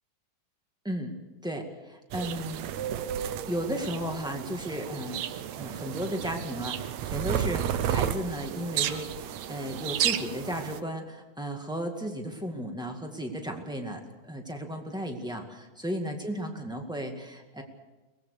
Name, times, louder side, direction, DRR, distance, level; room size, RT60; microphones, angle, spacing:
voice 1, 0.8-1.2 1.4-3.0 3.5-5.2 5.6-17.6, equal, 5° right, 3 dB, 0.7 m, -34 dB
sound 1, 2.1-10.8, right 10 dB, 70° right, 1.8 m, -32 dB
23.5 x 19.0 x 6.7 m, 1.1 s
omnidirectional pair, 4.0 m